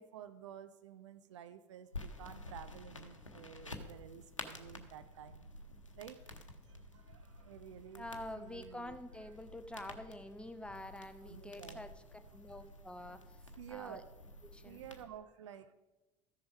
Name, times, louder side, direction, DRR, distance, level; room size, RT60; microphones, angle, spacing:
voice 1, 0.0-5.4 5.9-6.4 6.7-8.1 8.4-9.0 11.2-11.9 13.6-14.1 14.6-15.7, right 9 dB, 70° right, 11 dB, 0.6 m, -51 dB
sound 1, 1.9-15.0, left 2 dB, 85° left, 0.9 m, -51 dB
voice 2, 8.0-11.9 12.3-14.0 14.4-14.8, left 1 dB, 5° left, 8 dB, 0.9 m, -47 dB
13.5 x 6.9 x 5.2 m, 1.0 s
figure-of-eight pair, 65°, 16 cm